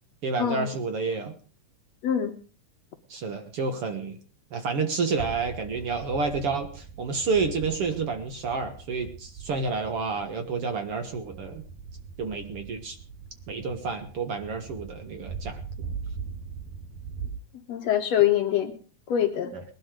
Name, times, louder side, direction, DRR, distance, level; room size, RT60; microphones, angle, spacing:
voice 1, 0.2-1.4 3.1-4.2 4.5-11.6 12.2-13.0 13.5-15.6 19.5-19.6, right 4 dB, 55° right, 7 dB, 1.9 m, -29 dB
voice 2, 2.0-2.3 17.7-18.7 19.1-19.5, left 10 dB, 65° left, 6 dB, 1.8 m, -24 dB
sound 1, 5.1-17.3, right 5 dB, 85° right, 5.9 m, -41 dB
20.0 x 11.5 x 5.1 m, 0.39 s
omnidirectional pair, 3.9 m